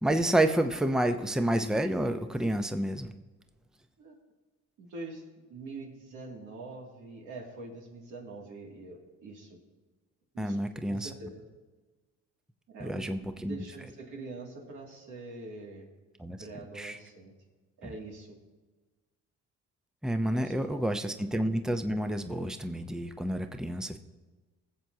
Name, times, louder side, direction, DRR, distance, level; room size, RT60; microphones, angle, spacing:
voice 1, 0.0-3.1 10.4-11.1 12.8-13.6 16.2-16.4 16.7-17.0 17.8-17.9 20.0-24.0, right 1 dB, ahead, 7 dB, 0.7 m, -29 dB
voice 2, 4.8-5.2 5.5-9.6 10.3-11.4 12.7-15.9 16.4-17.3 17.8-18.4 20.3-21.1 23.8-23.9, right 3 dB, 80° right, -1 dB, 2.5 m, -44 dB
20.0 x 7.6 x 2.8 m, 1.3 s
cardioid pair, 90°, 30 cm